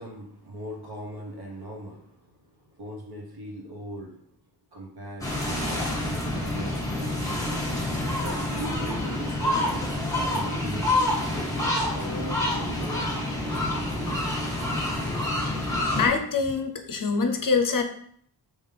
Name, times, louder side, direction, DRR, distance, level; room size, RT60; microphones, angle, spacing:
voice 1, 0.0-4.2 4.7-7.1 8.2-11.3 11.9-13.0 13.5-14.0, right 1 dB, 60° right, -1 dB, 1.2 m, -40 dB
sound 1, 5.2-16.1, left 1 dB, 10° left, 1.4 m, -27 dB
voice 2, 16.0-17.8, left 5 dB, 50° left, 6 dB, 0.6 m, -24 dB
3.7 x 3.1 x 3.3 m, 0.64 s
wide cardioid pair, 70°, 42 cm